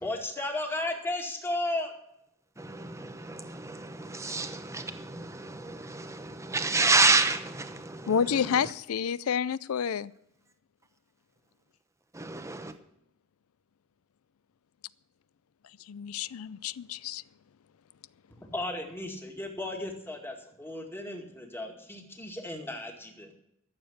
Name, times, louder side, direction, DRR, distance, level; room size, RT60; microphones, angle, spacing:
voice 1, 0.0-1.9 18.4-23.3, left 2 dB, 10° left, 2 dB, 2.0 m, -34 dB
voice 2, 2.6-8.7 12.1-12.7, right 3 dB, 15° right, 8 dB, 0.9 m, -29 dB
voice 3, 8.1-10.1 15.9-17.2, left 7 dB, 75° left, 20 dB, 0.4 m, -29 dB
13.5 x 7.2 x 8.7 m, 0.78 s
head